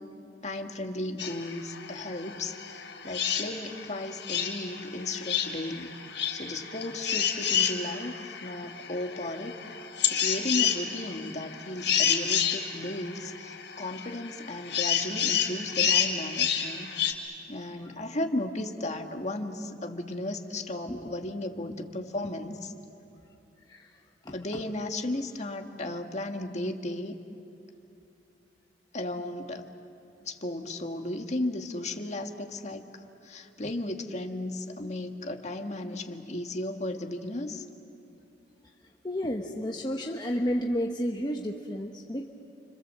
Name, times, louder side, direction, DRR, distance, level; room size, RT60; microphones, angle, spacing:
voice 1, 0.4-6.0 6.3-9.6 10.0-17.0 17.5-22.7 24.3-27.2 28.9-29.7 30.2-37.7, left 1 dB, 40° left, 4 dB, 1.7 m, -35 dB
sound 1, 1.2-17.1, left 8 dB, 85° left, 3.6 m, -30 dB
voice 2, 39.0-42.3, equal, 25° left, 1 dB, 1.2 m, -31 dB
30.0 x 26.0 x 7.6 m, 2.7 s
head